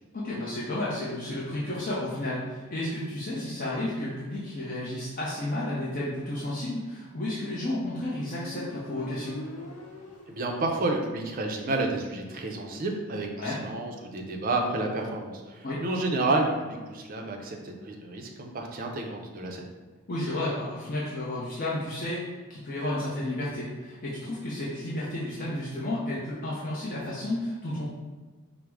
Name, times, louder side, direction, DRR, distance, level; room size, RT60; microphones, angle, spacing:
voice 1, 0.1-9.4 13.4-13.6 15.6-15.8 20.1-27.8, left 1 dB, 40° left, -7 dB, 0.6 m, -32 dB
Motorcycle, 7.4-11.1, left 1 dB, 85° left, 0.7 m, -44 dB
voice 2, 10.3-19.7, right 2 dB, 40° right, 2 dB, 0.4 m, -30 dB
4.6 x 2.0 x 3.4 m, 1.3 s
head